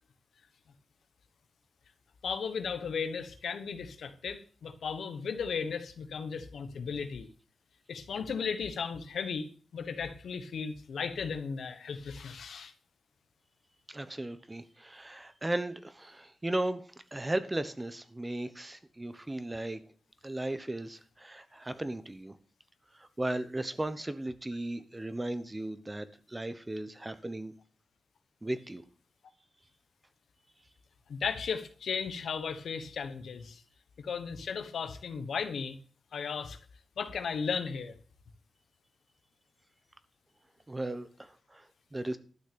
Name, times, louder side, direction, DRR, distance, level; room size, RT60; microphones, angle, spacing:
voice 1, 2.2-7.3 7.9-9.5 9.7-12.7 31.1-33.6 34.0-35.8 36.1-36.6 37.0-38.0, left 6 dB, 90° left, 9 dB, 1.2 m, -35 dB
voice 2, 13.9-16.8 17.1-19.8 20.2-22.4 23.0-27.5 28.4-28.8 40.7-41.7 41.9-42.2, right 1 dB, 20° right, 12 dB, 1.0 m, -36 dB
12.0 x 6.3 x 6.9 m, 0.42 s
cardioid pair, 80°, 0 cm